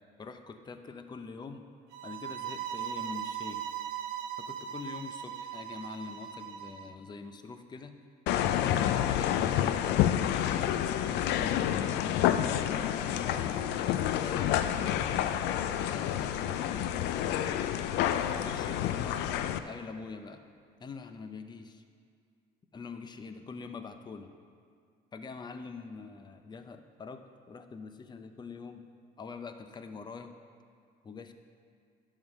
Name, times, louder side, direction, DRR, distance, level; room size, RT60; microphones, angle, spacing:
voice 1, 0.2-1.7 2.0-3.6 4.4-8.0 8.5-12.1 12.6-17.7 18.4-20.4 20.8-21.8 22.7-24.3 25.1-28.9 29.2-30.3 31.0-31.3, left 4 dB, 25° left, 8 dB, 0.6 m, -45 dB
sound 1, 1.9-6.9, right 9 dB, 80° right, 0.7 m, -39 dB
sound 2, 8.3-19.6, left 11 dB, 85° left, 0.4 m, -29 dB
10.5 x 3.8 x 6.5 m, 2.2 s
cardioid pair, 110°, 17 cm